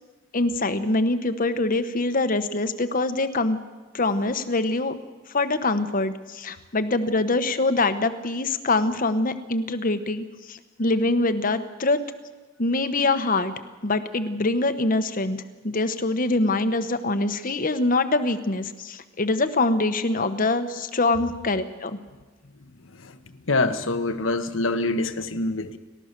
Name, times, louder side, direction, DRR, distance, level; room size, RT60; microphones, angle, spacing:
voice 1, 0.3-3.6 3.9-4.9 5.3-12.0 12.6-13.5 13.8-22.0, left 2 dB, 45° left, 10 dB, 1.1 m, -24 dB
voice 2, 23.5-25.8, left 2 dB, 85° left, 9 dB, 1.3 m, -25 dB
30.0 x 13.0 x 6.8 m, 1.2 s
head